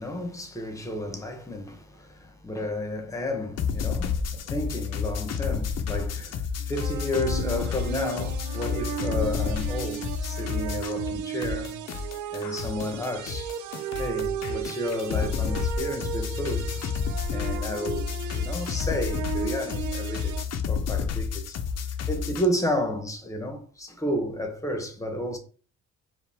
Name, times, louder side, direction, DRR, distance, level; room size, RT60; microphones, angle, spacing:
voice 1, 0.0-11.8 12.3-13.5 14.0-16.9 17.3-20.4 20.7-21.6 22.1-25.4, left 1 dB, 10° left, 1.0 m, -32 dB
sound 1, 3.6-11.2 11.4-22.5, left 6 dB, 55° left, 0.7 m, -30 dB
sound 2, 6.7-20.4, right 9 dB, 75° right, 0.5 m, -35 dB
4.7 x 2.4 x 3.5 m
cardioid pair, 90°, 30 cm